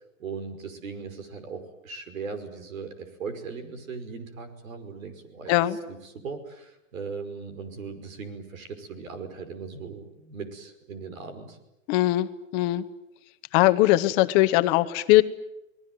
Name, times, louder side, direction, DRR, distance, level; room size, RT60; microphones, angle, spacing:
voice 1, 0.2-11.6, right 5 dB, 85° right, 9 dB, 5.6 m, -38 dB
voice 2, 11.9-12.3 12.5-12.8 13.5-15.2, left 16 dB, 35° left, 11 dB, 1.0 m, -20 dB
29.5 x 20.0 x 9.3 m, 0.91 s
hypercardioid pair, 150°, 40 cm